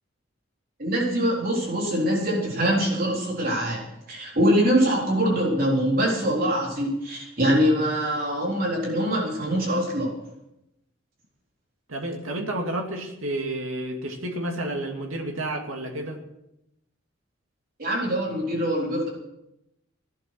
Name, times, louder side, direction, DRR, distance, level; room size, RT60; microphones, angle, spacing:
voice 1, 0.8-3.8 4.1-10.1 17.8-19.1, equal, 45° right, -3 dB, 4.0 m, -23 dB
voice 2, 11.9-16.2, right 1 dB, 90° right, 2 dB, 2.5 m, -30 dB
17.0 x 12.0 x 6.2 m, 0.86 s
head